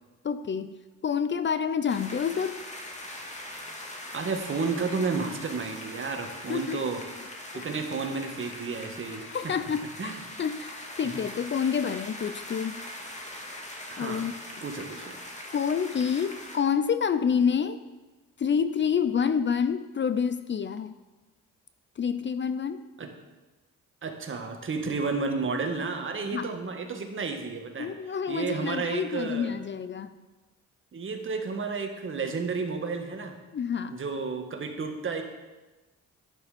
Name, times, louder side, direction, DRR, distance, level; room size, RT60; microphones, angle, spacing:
voice 1, 0.2-0.7 1.0-2.6 6.5-6.8 7.5-7.7 9.2-12.8 13.9-14.3 15.5-17.9 18.4-20.9 22.0-22.8 26.3-26.5 27.8-30.2 33.5-34.0, left 7 dB, 40° left, 12 dB, 0.6 m, -28 dB
sound 1, 1.9-16.6, left 1 dB, 25° left, 2.2 m, -41 dB
voice 2, 4.1-7.0 7.5-9.6 10.0-10.2 11.2-11.3 11.8-11.9 13.9-14.3 14.6-15.2 23.0-23.1 24.0-27.9 28.3-29.5 30.9-33.4 33.9-35.2, right 4 dB, 40° right, 5 dB, 1.8 m, -32 dB
11.0 x 9.9 x 5.2 m, 1.2 s
cardioid pair, 90°, 30 cm